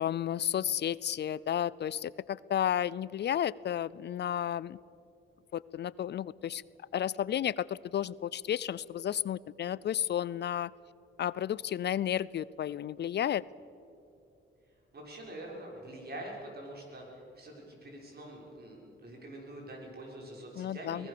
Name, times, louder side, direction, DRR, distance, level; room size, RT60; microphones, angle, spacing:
voice 1, 0.0-4.8 5.5-6.6 6.9-10.7 11.2-13.4 20.6-21.1, left 10 dB, 55° left, 21 dB, 0.4 m, -32 dB
voice 2, 14.9-21.1, right 1 dB, 50° right, -1 dB, 6.2 m, -45 dB
23.5 x 19.0 x 6.8 m, 2.8 s
cardioid pair, 95°, 20 cm